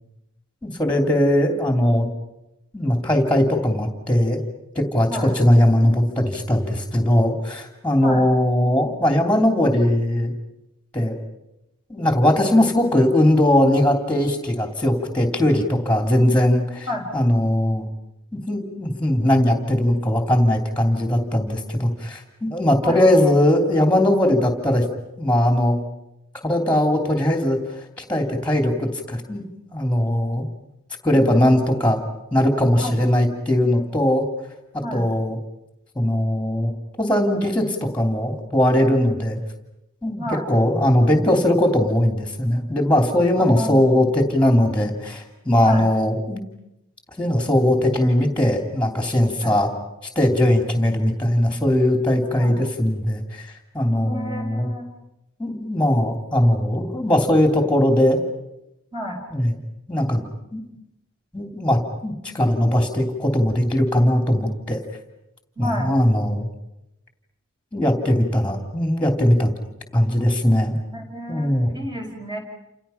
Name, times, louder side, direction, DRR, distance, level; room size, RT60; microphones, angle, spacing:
voice 1, 0.6-2.1 2.7-4.4 4.7-10.3 10.9-11.2 11.9-16.9 17.1-17.9 18.3-24.8 25.2-25.8 26.4-27.6 28.0-29.5 29.7-30.5 31.0-32.0 32.3-34.3 34.9-35.4 35.9-36.7 37.0-39.4 40.0-46.4 47.2-49.7 50.1-53.5 53.7-54.7 55.4-58.2 59.3-59.5 59.9-60.2 60.5-60.6 61.3-64.8 65.6-66.5 67.7-69.5 69.9-70.8 71.3-71.7, left 1 dB, 5° left, 4 dB, 3.0 m, -19 dB
voice 2, 43.4-43.8 45.6-45.9 49.4-49.5 52.4-52.6 54.0-54.9 58.9-59.2 65.6-65.9 70.9-72.4, equal, 20° right, 1 dB, 5.2 m, -30 dB
29.0 x 28.5 x 5.8 m, 0.88 s
head